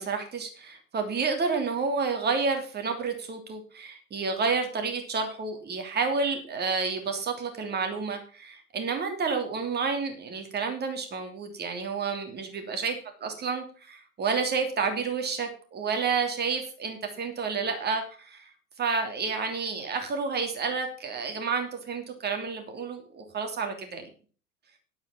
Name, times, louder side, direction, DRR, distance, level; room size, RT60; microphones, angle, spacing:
voice 1, 0.0-12.9 13.2-18.4 18.8-24.0, right 5 dB, 20° right, 5 dB, 3.0 m, -30 dB
10.5 x 8.6 x 5.9 m, 0.39 s
figure-of-eight pair, 90°, 43 cm